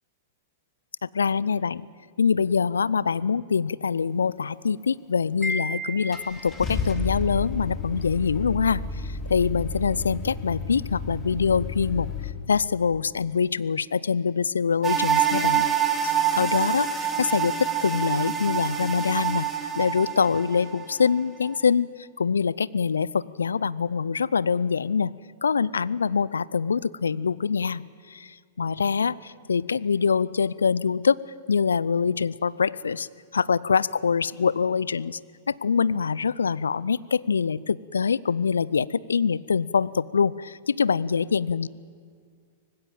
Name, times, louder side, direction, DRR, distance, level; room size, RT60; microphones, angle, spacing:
voice 1, 1.0-1.9 2.2-12.1 12.5-15.7 16.0-19.5 19.8-25.1 25.4-27.8 28.1-35.2 35.5-41.7, left 6 dB, 75° left, 21 dB, 0.5 m, -24 dB
Car / Engine starting, 5.4-5.5 6.1-12.3, left 4 dB, 20° left, 3.1 m, -32 dB
Wind chime, 5.4-6.8, equal, 5° left, 1.2 m, -33 dB
sound 1, 14.8-21.2 21.4-21.6, right 8 dB, 15° right, 2.7 m, -26 dB
24.5 x 19.5 x 8.9 m, 2.1 s
figure-of-eight pair, 100°, 0 cm